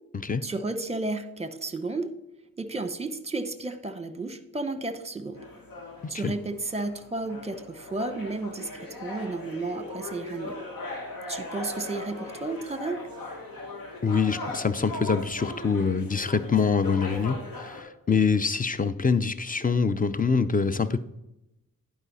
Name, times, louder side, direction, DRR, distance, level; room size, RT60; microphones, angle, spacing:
voice 1, 0.4-2.1 2.6-5.5 6.1-10.6 11.3-13.1, right 2 dB, 20° right, 11 dB, 1.0 m, -33 dB
sound 1, 5.3-17.8, left 2 dB, 80° left, 1.6 m, -39 dB
voice 2, 14.0-21.0, left 5 dB, 25° left, 13 dB, 0.6 m, -25 dB
11.0 x 5.0 x 4.1 m, 0.89 s
cardioid pair, 50°, 34 cm